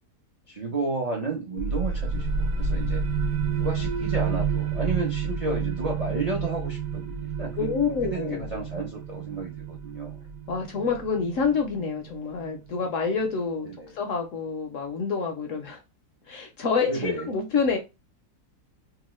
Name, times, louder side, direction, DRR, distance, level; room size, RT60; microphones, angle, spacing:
voice 1, 0.5-3.0 3.5-10.2 13.7-14.0 16.8-17.3, right 3 dB, 60° right, 0.4 m, -32 dB
sound 1, 1.6-13.0, right 5 dB, 90° right, 1.2 m, -30 dB
voice 2, 7.6-8.5 10.5-13.7 13.9-15.8 16.3-17.8, left 5 dB, 70° left, 0.8 m, -27 dB
2.9 x 2.3 x 3.0 m
omnidirectional pair, 1.7 m